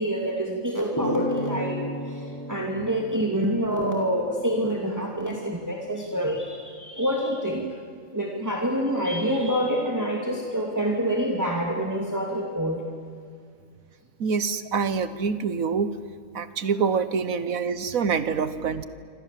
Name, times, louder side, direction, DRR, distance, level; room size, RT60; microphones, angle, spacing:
voice 1, 0.0-1.8 2.5-7.7 8.1-12.8, equal, 15° right, 0 dB, 2.6 m, -26 dB
sound 1, 1.0-4.4, equal, 15° left, 4.2 m, -32 dB
voice 2, 14.2-15.9 16.3-18.8, right 5 dB, 85° right, 12 dB, 1.6 m, -26 dB
27.5 x 26.0 x 7.6 m, 2.2 s
omnidirectional pair, 1.4 m